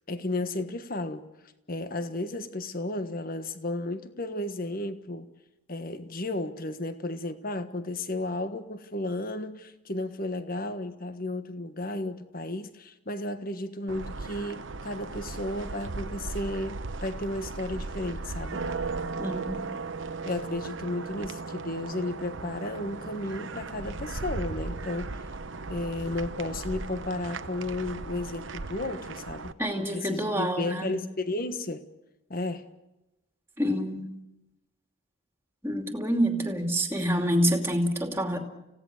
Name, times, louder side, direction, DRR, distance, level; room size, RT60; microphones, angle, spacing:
voice 1, 0.1-1.3 1.7-5.3 5.7-18.6 20.2-25.1 25.7-31.9 32.3-32.6, left 2 dB, 45° left, 1.4 m, -33 dB
sound 1, 13.9-29.5, right 3 dB, 60° right, 0.9 m, -37 dB
voice 2, 19.2-19.6 29.6-31.0 33.6-34.1 35.6-38.4, equal, 10° right, 2.6 m, -27 dB
29.5 x 17.0 x 6.6 m
head